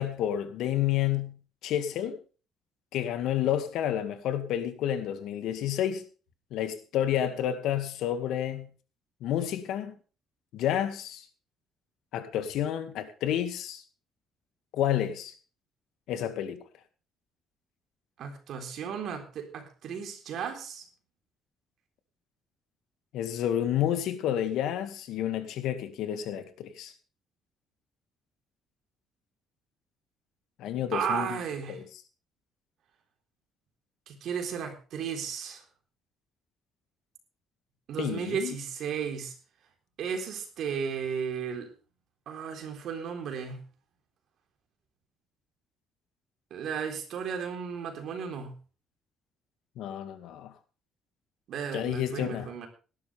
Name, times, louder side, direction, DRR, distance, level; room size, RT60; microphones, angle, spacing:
voice 1, 0.0-2.2 2.9-6.0 6.5-8.7 9.2-9.9 10.5-11.3 12.1-13.8 14.7-15.4 16.1-16.6 23.1-26.9 30.6-31.4 31.7-31.8 38.0-38.6 49.8-50.5 51.7-52.5, left 11 dB, 80° left, 2.0 m, -30 dB
voice 2, 18.2-20.9 30.9-31.8 34.1-35.6 37.9-39.3 40.0-41.7 42.3-43.7 46.5-48.6 51.5-52.7, right 7 dB, 60° right, 3.8 m, -34 dB
18.0 x 12.0 x 3.5 m
cardioid pair, 155°, 0 cm